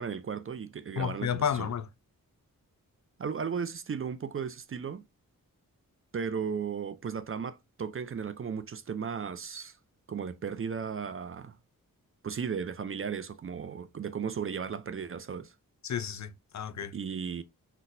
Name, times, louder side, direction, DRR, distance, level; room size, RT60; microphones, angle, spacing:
voice 1, 0.0-1.7 3.2-5.0 6.1-9.8 10.1-11.6 12.2-15.5 16.9-17.4, right 6 dB, 40° right, 0.4 m, -35 dB
voice 2, 1.0-1.9 15.8-16.9, left 8 dB, 50° left, 0.5 m, -32 dB
4.0 x 2.2 x 2.6 m
cardioid pair, 50°, 36 cm